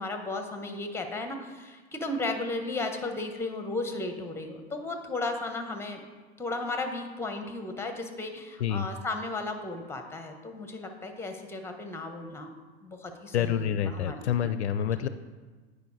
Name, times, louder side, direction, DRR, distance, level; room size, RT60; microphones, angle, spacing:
voice 1, 0.0-6.0 6.4-12.5 12.8-14.5 15.0-15.1, left 2 dB, 5° left, 6 dB, 1.1 m, -35 dB
voice 2, 13.3-15.1, left 9 dB, 75° left, 12 dB, 0.5 m, -27 dB
9.4 x 4.9 x 4.7 m, 1.4 s
hypercardioid pair, 95°, 33 cm